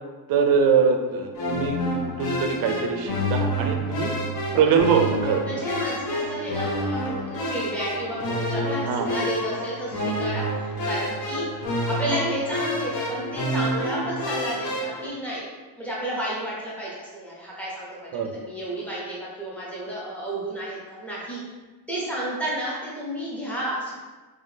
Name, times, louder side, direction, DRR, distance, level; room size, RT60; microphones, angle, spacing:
voice 1, 0.3-1.8 2.0-4.1 4.5-5.4 8.8-9.1 18.1-18.3, right 6 dB, 50° right, 4 dB, 0.5 m, -22 dB
sound 1, 1.3-15.1, equal, 55° left, 0.9 m, -28 dB
voice 2, 4.5-5.1 5.5-11.4 11.9-15.5 15.8-21.4 21.9-24.0, right 1 dB, 5° left, -7 dB, 0.7 m, -32 dB
3.5 x 3.2 x 2.7 m, 1.2 s
cardioid pair, 170°, 46 cm